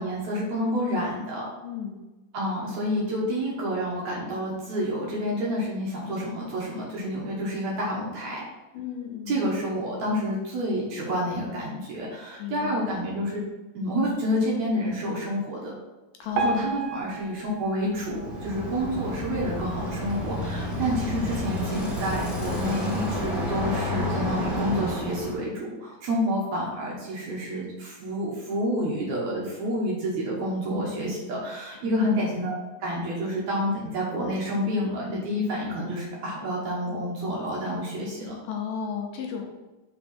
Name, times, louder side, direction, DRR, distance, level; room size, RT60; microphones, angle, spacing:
voice 1, 0.0-1.5 2.3-8.4 9.3-13.4 13.7-15.7 16.4-32.5 32.8-38.4, equal, 60° right, -4 dB, 2.2 m, -29 dB
voice 2, 1.6-2.0 8.7-9.4 12.4-12.8 16.2-16.8 31.8-32.1 38.5-39.6, left 7 dB, 75° left, 2 dB, 2.2 m, -34 dB
Piano, 16.3-19.5 20.0-20.1 20.4-20.5 21.2-21.3 21.9-22.0, right 3 dB, 80° right, 2.4 m, -33 dB
Bicycle, 17.9-25.4, left 1 dB, ahead, 0.7 m, -30 dB
5.6 x 4.4 x 4.3 m, 1.1 s
omnidirectional pair, 4.2 m